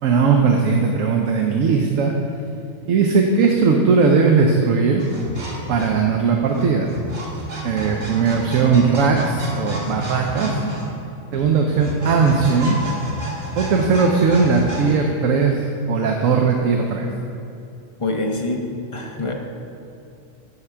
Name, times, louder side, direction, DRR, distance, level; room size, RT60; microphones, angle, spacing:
voice 1, 0.0-2.1 2.9-5.0 5.7-6.9 7.6-10.6 11.3-12.8 13.6-17.1, right 5 dB, 75° right, 2 dB, 1.0 m, -18 dB
sound 1, 5.0-14.9, right 1 dB, 60° right, 1.6 m, -31 dB
voice 2, 10.4-10.7 18.0-18.7 18.9-19.3, left 2 dB, 45° left, 1 dB, 0.4 m, -25 dB
10.5 x 3.7 x 5.6 m, 2.7 s
omnidirectional pair, 1.4 m